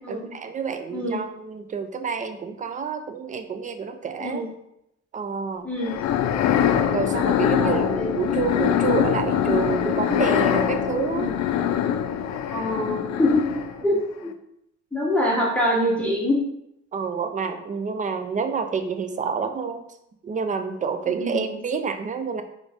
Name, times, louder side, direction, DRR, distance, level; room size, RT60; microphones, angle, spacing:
voice 1, 0.1-4.4 5.1-5.7 6.9-11.3 16.9-19.9 20.2-22.4, right 5 dB, 25° right, 8 dB, 0.4 m, -28 dB
voice 2, 0.9-1.2 4.2-4.5 5.6-6.0 7.6-8.1 11.1-11.4 12.5-13.4 13.8-14.0 14.9-16.4 21.2-21.6, left 1 dB, 5° left, -4 dB, 0.9 m, -24 dB
sound 1, 5.8-13.8, left 9 dB, 70° left, 0.5 m, -23 dB
3.9 x 3.6 x 3.5 m, 0.81 s
cardioid pair, 130°, 29 cm